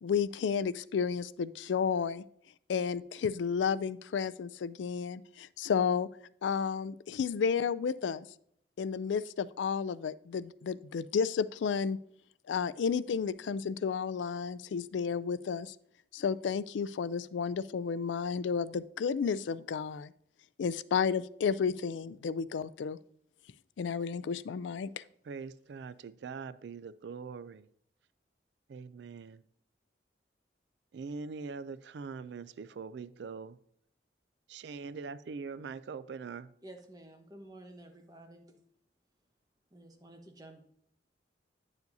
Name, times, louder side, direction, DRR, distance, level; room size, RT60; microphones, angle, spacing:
voice 1, 0.0-2.2 2.7-6.1 6.4-8.2 8.8-12.0 12.5-15.7 16.1-20.1 20.6-23.0 23.8-25.0, left 6 dB, 85° left, 0.4 m, -32 dB
voice 2, 25.2-27.7 28.7-29.4 30.9-33.6 34.5-36.5, right 5 dB, 70° right, 0.4 m, -42 dB
voice 3, 36.6-38.5 39.7-40.6, right 1 dB, 20° right, 1.1 m, -51 dB
9.3 x 7.1 x 2.7 m
head